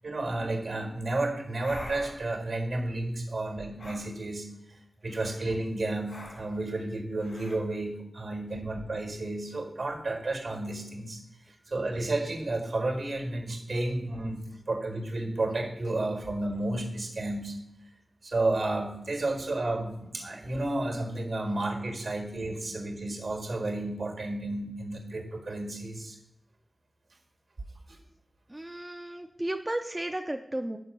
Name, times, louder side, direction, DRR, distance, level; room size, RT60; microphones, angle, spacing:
voice 1, 0.0-11.2 11.7-17.6 17.8-18.0 18.2-26.2 27.9-28.0, right 2 dB, 70° right, 4 dB, 1.7 m, -32 dB
sound 1, 1.6-2.3 3.8-4.1 5.1-5.5 6.1-6.6 7.2-7.6, left 1 dB, 80° left, 2.0 m, -44 dB
voice 2, 28.5-30.8, right 1 dB, 20° right, 5 dB, 0.4 m, -34 dB
6.2 x 5.0 x 6.5 m, 0.82 s
wide cardioid pair, 80°, 0 cm